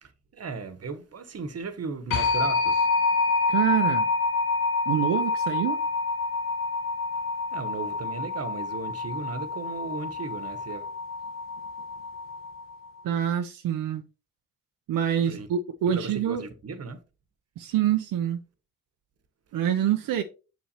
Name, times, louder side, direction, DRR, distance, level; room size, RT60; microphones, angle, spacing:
voice 1, 0.0-3.0 7.5-10.9 15.3-15.5 15.9-17.0, right 4 dB, 50° right, 1.1 m, -36 dB
sound 1, 2.1-12.7, left 4 dB, 85° left, 1.3 m, -27 dB
voice 2, 3.5-4.1 4.9-5.8 13.0-14.0 14.9-16.4 17.6-18.4 19.5-20.2, right 10 dB, 85° right, 0.6 m, -26 dB
7.2 x 6.2 x 2.8 m
cardioid pair, 60°, 33 cm